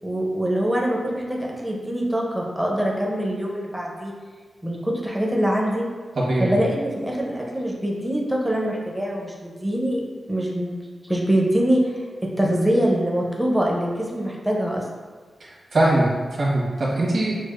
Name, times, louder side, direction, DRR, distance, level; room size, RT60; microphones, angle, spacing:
voice 1, 0.0-4.1 4.6-5.8 6.4-10.0 10.3-10.8 11.0-14.9, right 1 dB, 5° right, -2 dB, 0.5 m, -24 dB
voice 2, 6.2-6.6 15.4-17.4, right 1 dB, 55° right, -6 dB, 1.1 m, -22 dB
6.2 x 2.3 x 2.4 m, 1.5 s
wide cardioid pair, 150°, 0 cm